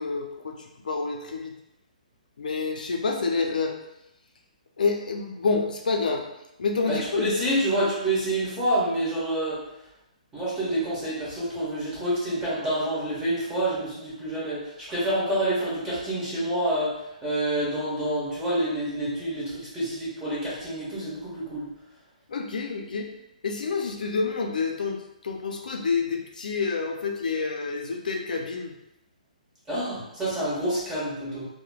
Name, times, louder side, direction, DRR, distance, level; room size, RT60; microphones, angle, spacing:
voice 1, 0.0-1.5 2.4-3.8 4.8-6.3 6.6-7.3 22.3-23.1 23.4-28.7, left 4 dB, 75° left, 2 dB, 0.4 m, -28 dB
voice 2, 6.9-9.6 10.3-17.0 17.2-21.7 29.7-31.4, right 1 dB, 10° right, -9 dB, 1.0 m, -27 dB
3.1 x 2.1 x 2.3 m, 0.87 s
hypercardioid pair, 145°, 4 cm